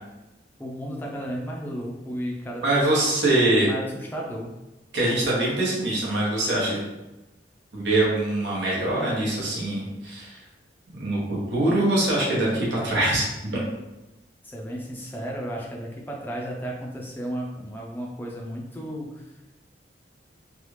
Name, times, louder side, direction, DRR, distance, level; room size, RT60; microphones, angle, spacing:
voice 1, 0.6-3.2 3.6-4.5 14.4-19.3, equal, 10° left, -2 dB, 0.5 m, -34 dB
voice 2, 2.6-3.7 4.9-6.8 7.7-10.4 10.9-13.6, right 1 dB, 70° right, -6 dB, 1.0 m, -23 dB
3.2 x 2.3 x 3.2 m, 1.0 s
head